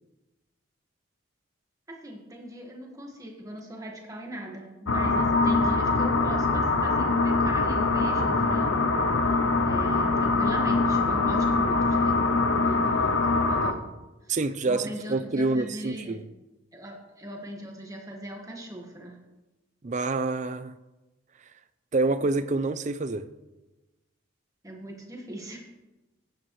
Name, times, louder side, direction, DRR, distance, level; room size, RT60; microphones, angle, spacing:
voice 1, 1.9-8.8 9.2-13.9 14.2-14.4 14.7-16.2 16.7-19.2 24.6-25.6, equal, 15° right, 1.5 m, -40 dB
sound 1, 4.9-13.7, left 3 dB, 90° left, 0.8 m, -23 dB
voice 2, 14.3-16.2 19.8-20.7 21.9-23.2, right 3 dB, 35° right, 0.5 m, -27 dB
14.5 x 9.2 x 3.1 m
head